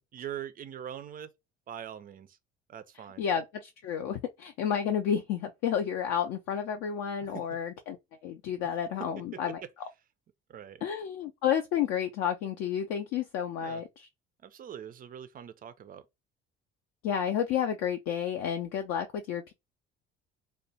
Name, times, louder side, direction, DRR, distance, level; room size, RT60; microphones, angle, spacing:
voice 1, 0.1-1.3 1.7-2.4 2.7-3.2 7.3-7.4 9.0-9.4 10.5-10.8 13.5-13.8 14.4-16.0, right 9 dB, 25° right, 0.4 m, -42 dB
voice 2, 3.2-8.0 8.2-9.6 10.8-14.1 17.0-19.5, left 8 dB, 50° left, 0.4 m, -31 dB
3.3 x 2.1 x 2.7 m
figure-of-eight pair, 55°, 34 cm